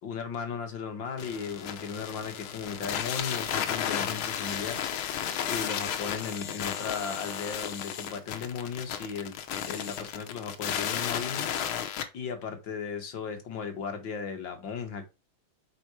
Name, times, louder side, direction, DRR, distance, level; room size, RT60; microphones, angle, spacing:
voice 1, 0.0-5.2 5.4-9.3 9.6-11.7 12.1-15.1, left 6 dB, 65° left, 2.2 m, -36 dB
sound 1, 1.2-12.1, left 9 dB, 80° left, 1.8 m, -33 dB
7.9 x 4.7 x 4.8 m
omnidirectional pair, 2.2 m